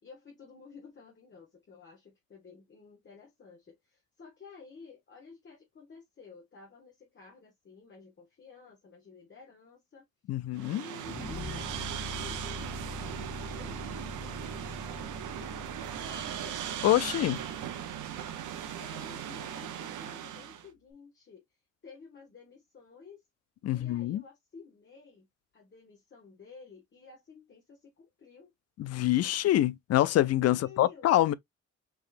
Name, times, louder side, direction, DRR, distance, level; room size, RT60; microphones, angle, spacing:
voice 1, 0.0-10.0 10.4-11.9 12.1-16.6 18.3-23.2 23.7-25.3 25.5-28.5 30.5-31.1, left 5 dB, 40° left, 1.6 m, -53 dB
voice 2, 10.3-10.8 16.8-17.4 23.6-24.2 28.8-31.3, left 14 dB, 55° left, 0.4 m, -25 dB
sound 1, 10.5-20.7, right 10 dB, 80° right, 0.9 m, -39 dB
sound 2, 11.0-20.1, left 2 dB, 20° left, 1.1 m, -44 dB
4.8 x 2.9 x 2.5 m
cardioid pair, 90°, 30 cm